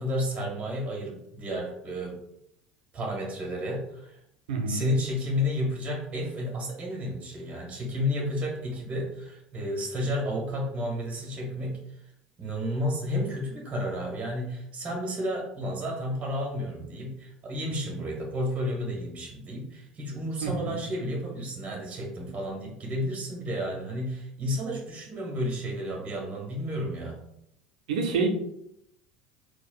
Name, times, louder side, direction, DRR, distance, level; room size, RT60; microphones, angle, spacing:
voice 1, 0.0-2.2 2.9-4.2 4.7-11.8 12.4-27.2, equal, 30° right, -1 dB, 1.1 m, -31 dB
voice 2, 4.5-4.8 20.4-20.8 27.9-28.3, right 4 dB, 75° right, 2 dB, 0.6 m, -27 dB
4.2 x 2.3 x 2.2 m, 0.78 s
hypercardioid pair, 70°, 4 cm